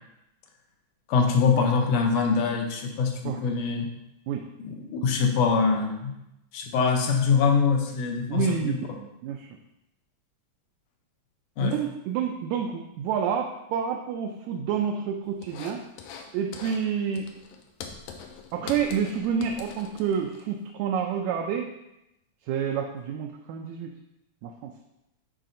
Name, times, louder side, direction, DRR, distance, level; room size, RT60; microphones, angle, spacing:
voice 1, 1.1-3.9 4.6-6.1 6.5-8.8 11.6-11.8, left 5 dB, 70° left, 3 dB, 1.7 m, -24 dB
voice 2, 8.3-9.5 11.6-15.8 16.3-17.3 18.5-21.7 22.5-23.9 24.4-24.7, right 7 dB, 80° right, 2 dB, 1.8 m, -29 dB
sound 1, 15.4-16.3 16.5-16.8 17.1-20.4, left 6 dB, 90° left, 2.1 m, -42 dB
10.0 x 4.1 x 2.6 m, 0.87 s
omnidirectional pair, 3.4 m